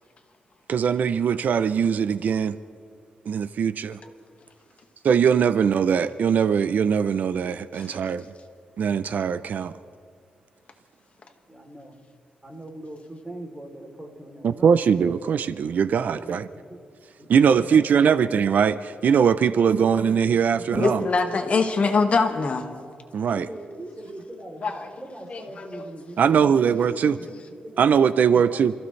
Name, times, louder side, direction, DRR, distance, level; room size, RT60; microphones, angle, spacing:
voice 1, 0.7-2.6 3.3-4.0 5.0-8.3 8.8-9.7 14.4-16.5 17.3-21.0 23.1-23.5 26.2-27.2 27.8-28.7, right 7 dB, 65° right, 13 dB, 0.5 m, -21 dB
voice 2, 11.5-12.0 12.4-14.8 16.0-16.8 17.2-18.2 20.3-21.6 23.3-26.6 26.9-27.8 28.3-28.7, right 1 dB, 15° right, 1 dB, 3.2 m, -41 dB
voice 3, 20.7-22.7 24.6-24.7 25.3-25.8, left 4 dB, 45° left, 4 dB, 1.6 m, -23 dB
28.0 x 15.5 x 3.2 m, 2.3 s
cardioid pair, 100°, 3 cm